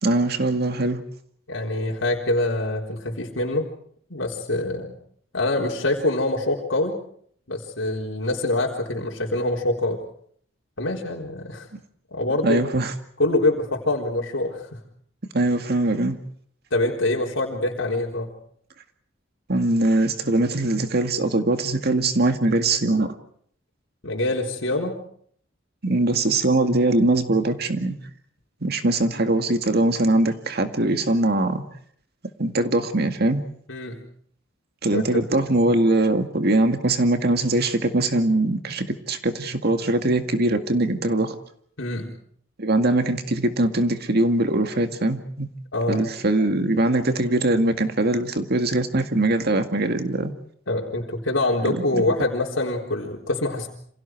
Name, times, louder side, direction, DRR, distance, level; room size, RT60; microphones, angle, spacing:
voice 1, 0.0-1.0 12.4-12.9 15.3-16.2 19.5-23.1 25.8-28.0 28.6-31.6 32.4-33.4 34.8-41.4 42.6-45.5 45.9-50.3 51.6-52.0, right 2 dB, 55° right, 2.0 m, -22 dB
voice 2, 1.5-3.6 4.1-4.9 5.3-7.0 7.5-10.0 10.8-11.7 12.1-12.6 13.2-14.8 16.7-18.3 24.0-25.0 33.7-34.0 34.9-35.0 41.8-42.1 45.7-46.0 50.7-53.7, left 2 dB, 80° left, 3.9 m, -25 dB
28.5 x 26.5 x 4.7 m
head